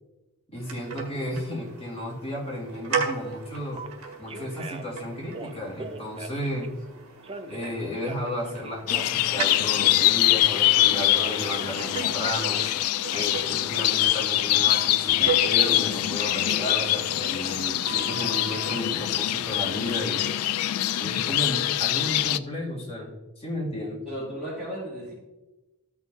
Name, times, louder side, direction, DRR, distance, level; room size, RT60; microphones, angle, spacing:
voice 1, 0.5-3.8 4.2-6.7 7.5-12.6 13.1-20.2 21.0-24.0, left 1 dB, 30° left, -5 dB, 2.4 m, -33 dB
sound 1, 0.5-17.9, right 5 dB, 70° right, 1.7 m, -38 dB
Telephone, 3.7-3.9 4.3-4.9 5.3-6.7 7.2-9.7 10.0-12.7 13.1-13.5 14.8-16.1 16.5-18.8, right 4 dB, 25° right, 0.5 m, -40 dB
sound 2, 8.9-22.4, left 14 dB, 80° left, 0.3 m, -24 dB
voice 2, 24.1-25.1, equal, 5° right, -12 dB, 2.7 m, -34 dB
14.0 x 6.0 x 2.7 m, 1.1 s
head